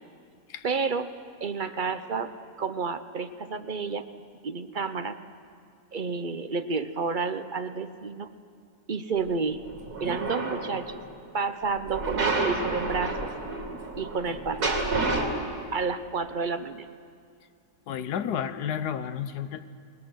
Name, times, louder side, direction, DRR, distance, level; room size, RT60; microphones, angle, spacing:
voice 1, 0.6-1.1 1.4-2.3 2.6-4.0 4.4-5.2 5.9-8.3 8.9-9.6 10.0-11.0 11.3-13.3 14.0-14.8 15.7-16.9, right 5 dB, 50° right, 10 dB, 0.6 m, -30 dB
sound 1, 9.6-11.0 11.9-15.3, right 3 dB, 65° right, 3.3 m, -30 dB
voice 2, 17.9-19.7, left 8 dB, 75° left, 12 dB, 1.4 m, -31 dB
28.5 x 20.0 x 6.3 m, 2.3 s
omnidirectional pair, 1.8 m